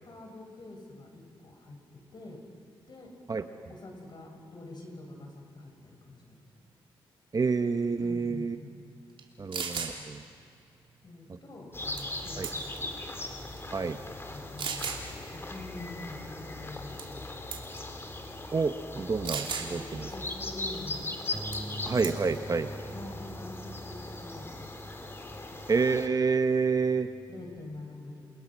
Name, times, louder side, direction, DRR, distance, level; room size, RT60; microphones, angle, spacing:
voice 1, 0.0-2.4 2.9-3.1 3.7-6.4 8.0-8.8 9.4-9.5 11.0-12.9 14.3-17.6 19.7-21.1 22.9-24.7 27.3-28.3, left 2 dB, 50° left, 2 dB, 6.8 m, -46 dB
voice 2, 7.3-8.5 9.4-10.2 12.4-12.5 13.7-14.0 18.5-20.0 21.9-22.7 25.7-27.1, right 4 dB, 40° right, 9 dB, 1.1 m, -28 dB
sound 1, 9.2-9.3 9.5-9.9 12.0-12.2 12.4-12.9 13.6-13.7 14.6-15.0 17.0-17.2 17.5-17.8 19.2-19.7 21.5-21.7 22.0-22.4, right 6 dB, 60° right, 3.3 m, -35 dB
sound 2, 11.7-26.1, left 2 dB, 25° left, 2.8 m, -39 dB
Bass guitar, 21.3-27.6, right 1 dB, 20° right, 4.1 m, -45 dB
29.0 x 27.0 x 6.3 m, 2.5 s
cardioid pair, 65°, 10 cm